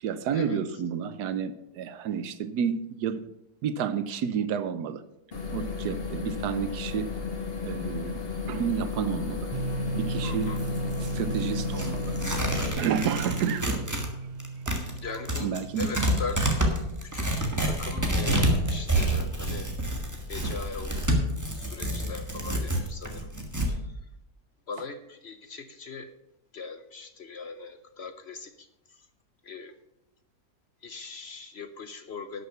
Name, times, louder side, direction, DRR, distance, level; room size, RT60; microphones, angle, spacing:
voice 1, 0.0-3.2 3.6-5.0 5.5-7.1 7.6-8.2 8.5-9.5 9.9-10.7 11.1-12.2 12.8-13.9 15.4-15.9, right 7 dB, 85° right, 13 dB, 1.3 m, -30 dB
sound 1, 5.3-12.7, left 5 dB, 40° left, 1.9 m, -33 dB
sound 2, 9.5-16.3, right 4 dB, 40° right, 0.7 m, -36 dB
voice 2, 10.2-10.6 15.0-15.5 15.8-16.5 17.0-17.3 17.6-19.7 20.3-20.9 21.5-23.3 23.7-23.9 24.7-26.1 26.5-29.1 29.4-29.7 30.8-32.4, left 4 dB, 55° left, 10 dB, 0.8 m, -40 dB
Tearing, 10.4-14.1 14.4-23.7, right 1 dB, 10° right, 1.5 m, -28 dB
11.5 x 6.5 x 6.8 m, 0.88 s
omnidirectional pair, 1.7 m